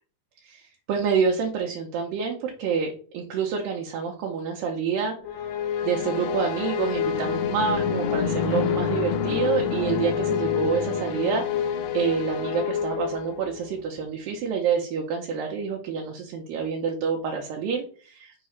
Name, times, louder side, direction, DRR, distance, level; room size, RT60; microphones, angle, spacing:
voice 1, 0.4-5.2 5.8-18.3, right 6 dB, 75° right, 0 dB, 2.4 m, -28 dB
sound 1, 5.2-13.7, left 7 dB, 85° left, 2.5 m, -27 dB
6.4 x 3.0 x 5.7 m, 0.43 s
omnidirectional pair, 4.4 m